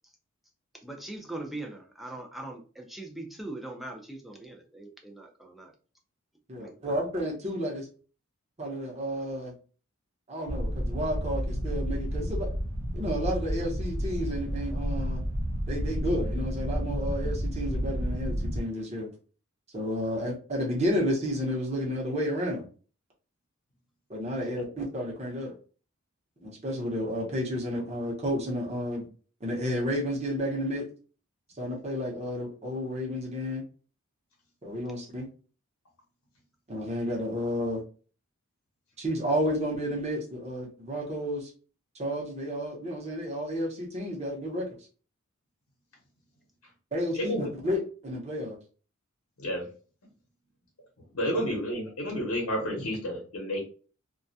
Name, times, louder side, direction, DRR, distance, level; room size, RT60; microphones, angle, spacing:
voice 1, 0.8-5.7 6.6-7.0, right 2 dB, ahead, 0 dB, 0.4 m, -41 dB
voice 2, 6.5-7.9 8.6-9.5 10.3-12.5 12.9-15.2 15.7-19.1 19.7-22.6 24.1-25.5 26.4-29.0 29.4-30.9 31.6-33.6 34.6-35.3 36.7-37.8 39.0-41.5 42.0-44.7 46.9-48.6 51.3-51.4, equal, 30° right, -2 dB, 0.8 m, -31 dB
sound 1, 10.5-18.6, equal, 55° right, 0.6 m, -31 dB
voice 3, 47.1-47.5 49.4-49.6 51.1-53.7, equal, 80° left, -1 dB, 0.8 m, -30 dB
2.3 x 2.1 x 2.6 m, 0.38 s
head